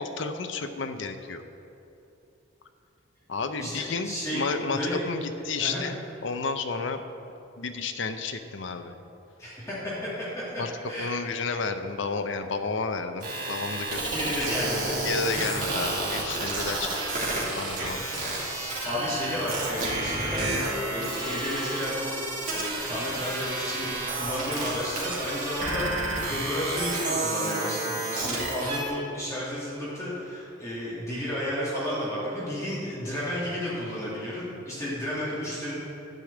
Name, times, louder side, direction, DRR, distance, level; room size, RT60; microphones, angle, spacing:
voice 1, 0.0-1.4 3.3-6.0 6.2-7.0 7.6-9.0 10.6-10.7 11.0-14.3 15.0-16.9 17.6-18.4, left 4 dB, 65° left, 8 dB, 0.6 m, -31 dB
voice 2, 3.6-5.0 5.6-5.8 9.4-10.3 10.5-11.1 14.1-15.0 15.3-15.5 17.8-18.0 18.8-20.5 20.9-22.1 22.5-23.9 24.2-35.8, left 1 dB, 15° left, -9 dB, 2.5 m, -32 dB
sound 1, 13.2-28.9, right 2 dB, 40° right, 2.5 m, -31 dB
sound 2, 13.6-26.6, equal, ahead, 2.2 m, -47 dB
10.5 x 5.0 x 8.1 m, 2.9 s
head